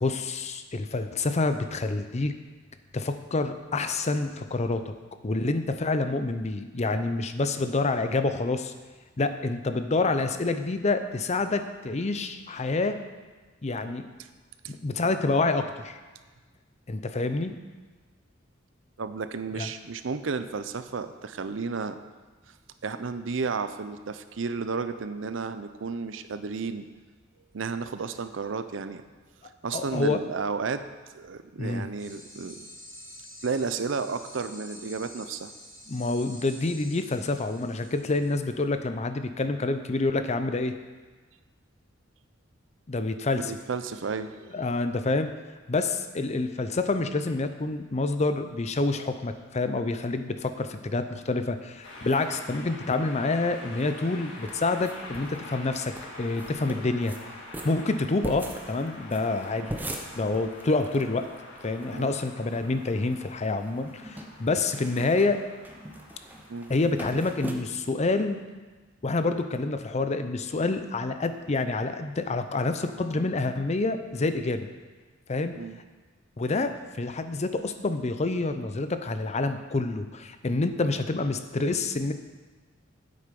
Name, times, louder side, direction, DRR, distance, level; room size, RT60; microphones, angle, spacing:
voice 1, 0.0-2.3 2.9-4.9 5.2-8.7 9.2-13.0 13.6-14.1 14.7-16.0 16.9-17.6 19.6-19.7 29.7-30.2 31.6-31.9 35.9-40.7 42.9-43.5 44.5-45.3 45.7-57.2 57.6-59.8 60.2-61.3 61.6-65.4 66.7-68.4 69.0-74.7 75.3-75.5 76.4-82.1, left 3 dB, 35° left, 9 dB, 0.6 m, -27 dB
voice 2, 19.0-22.0 22.8-26.9 27.5-29.0 29.6-30.8 31.1-32.7 33.4-35.5 43.3-44.5 61.9-62.1 66.5-66.7 75.6-75.8, right 4 dB, 70° right, 10 dB, 0.6 m, -32 dB
sound 1, 32.0-38.4, left 1 dB, 15° left, 3.8 m, -47 dB
sound 2, 51.8-67.4, left 1 dB, 80° left, 2.0 m, -46 dB
sound 3, 54.5-55.4 55.6-55.7 55.9-56.1 56.4-57.2 57.5-61.0 61.3-61.4 61.6-62.3 62.7-63.3 63.6-67.5, right 1 dB, 10° right, 0.9 m, -40 dB
8.6 x 8.1 x 5.3 m, 1.3 s
head